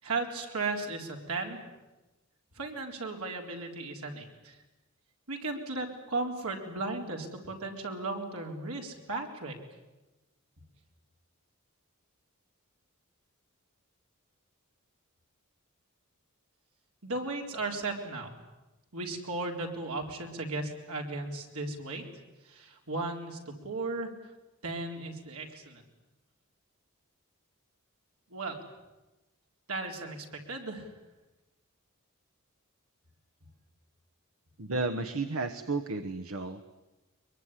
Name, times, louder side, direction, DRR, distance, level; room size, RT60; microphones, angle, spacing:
voice 1, 0.0-1.6 2.6-4.5 5.3-9.6 17.0-18.3 18.9-22.0 22.4-24.1 24.6-25.8 28.3-28.6 29.7-30.9, right 3 dB, 85° right, 2 dB, 4.1 m, -36 dB
voice 2, 34.6-36.6, right 3 dB, 70° right, 9 dB, 1.2 m, -32 dB
23.0 x 22.5 x 10.0 m, 1.1 s
head